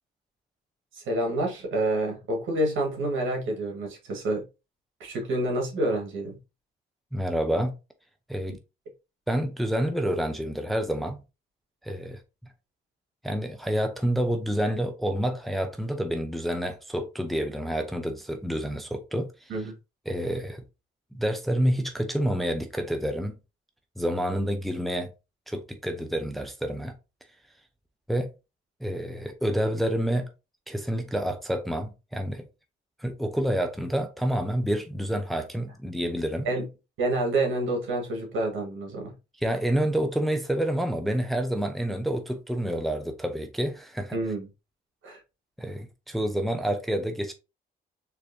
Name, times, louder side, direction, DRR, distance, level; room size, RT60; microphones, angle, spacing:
voice 1, 0.9-4.5 5.0-6.4 19.5-19.7 36.4-36.7 37.0-39.1 44.1-44.5 45.0-45.2, right 1 dB, 75° right, 1.8 m, -28 dB
voice 2, 7.1-7.7 8.3-8.6 9.3-11.2 11.8-12.2 13.2-19.3 20.1-20.6 21.1-23.4 24.0-25.1 25.5-27.0 28.1-28.3 28.8-30.3 30.7-32.5 33.0-36.5 39.4-44.2 45.6-47.3, equal, ahead, 0.7 m, -28 dB
4.4 x 3.2 x 2.7 m
cardioid pair, 90°, 20 cm